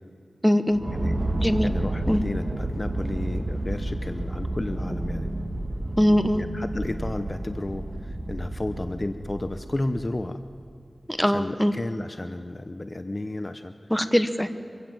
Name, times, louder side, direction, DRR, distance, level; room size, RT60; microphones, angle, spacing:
voice 1, 0.4-0.8 1.4-1.7 2.1-2.2 6.0-6.4 11.1-11.7 13.9-14.5, equal, 5° left, 9 dB, 1.2 m, -21 dB
sound 1, 0.7-10.3, right 1 dB, 40° right, 1.7 m, -30 dB
voice 2, 1.6-5.3 6.4-10.4 11.2-13.7, left 2 dB, 35° left, 9 dB, 0.8 m, -32 dB
25.0 x 16.0 x 7.7 m, 2.5 s
wide cardioid pair, 85°, 0 cm